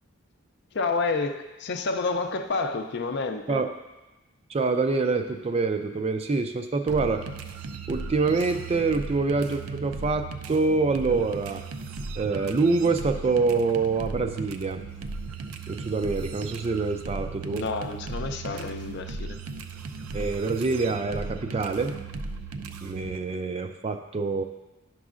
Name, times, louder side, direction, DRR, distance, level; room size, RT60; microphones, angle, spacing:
voice 1, 0.7-3.6 17.5-19.3, left 3 dB, 55° left, 6 dB, 0.5 m, -29 dB
voice 2, 4.5-7.2 7.9-11.6 12.2-14.8 15.7-17.6 20.1-21.9 22.8-24.4, right 4 dB, 30° right, 7 dB, 0.3 m, -26 dB
sound 1, 6.9-23.2, right 4 dB, 90° right, 0.4 m, -37 dB
10.5 x 6.1 x 2.4 m, 1.1 s
head